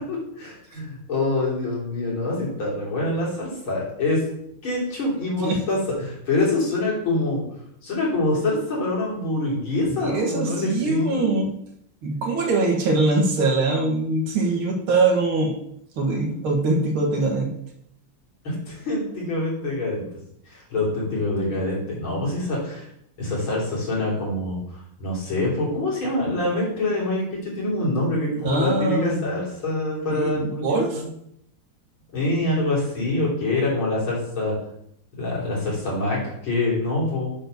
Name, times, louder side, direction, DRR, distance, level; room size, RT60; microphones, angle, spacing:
voice 1, 0.1-4.2 4.6-7.4 7.8-11.4 18.4-20.1 20.5-22.9 23.2-31.1 32.1-34.6 35.1-37.3, left 2 dB, 75° left, -5 dB, 4.0 m, -25 dB
voice 2, 10.0-11.5 12.0-15.6 16.0-17.5 28.4-29.2 30.1-31.0, right 3 dB, 85° right, 1 dB, 2.5 m, -22 dB
7.8 x 4.7 x 6.5 m, 0.75 s
omnidirectional pair, 2.3 m